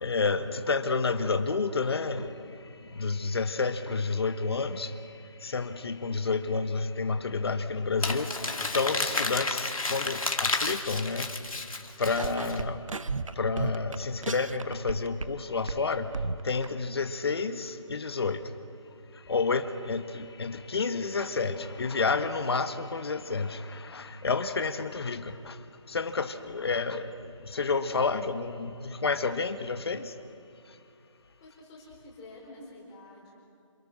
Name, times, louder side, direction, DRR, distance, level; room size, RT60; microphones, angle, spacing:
voice 1, 0.0-2.3 3.0-4.9 5.4-8.3 8.7-11.3 12.0-12.8 13.4-16.1 16.4-18.4 19.3-23.6 23.9-25.5 25.9-27.1 27.5-30.1, left 4 dB, 50° left, 8 dB, 1.5 m, -29 dB
Crumpling crinkling, 8.0-12.6, left 3 dB, 85° left, 2.2 m, -31 dB
sound 1, 12.1-15.4 15.7-16.7, right 4 dB, 70° right, 1.0 m, -34 dB
voice 2, 31.4-33.3, left 2 dB, 15° left, -4 dB, 4.6 m, -49 dB
28.5 x 27.0 x 6.2 m, 2.5 s
figure-of-eight pair, 170°, 17 cm